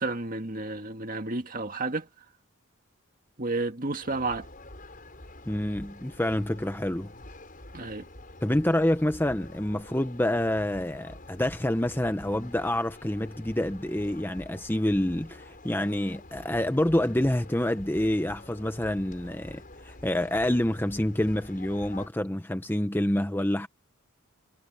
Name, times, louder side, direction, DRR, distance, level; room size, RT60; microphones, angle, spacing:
voice 1, 0.0-2.1 3.4-4.5 7.7-8.1, right 3 dB, 40° right, 1.8 m, -31 dB
sound 1, 4.0-22.1, left 1 dB, 40° left, 7.5 m, -47 dB
voice 2, 5.5-7.1 8.4-23.7, left 1 dB, 10° left, 0.7 m, -27 dB
head